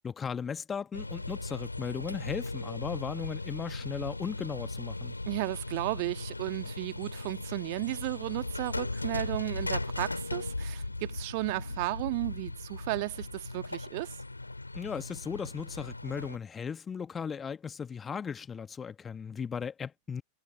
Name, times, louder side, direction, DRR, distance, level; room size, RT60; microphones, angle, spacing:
voice 1, 0.0-5.1 14.7-20.2, left 6 dB, 20° left, 1.5 m, -37 dB
sound 1, 0.9-16.4, left 2 dB, 85° left, 3.2 m, -38 dB
voice 2, 5.3-14.1, right 27 dB, 50° right, 1.5 m, -34 dB
figure-of-eight pair, 90°, 0 cm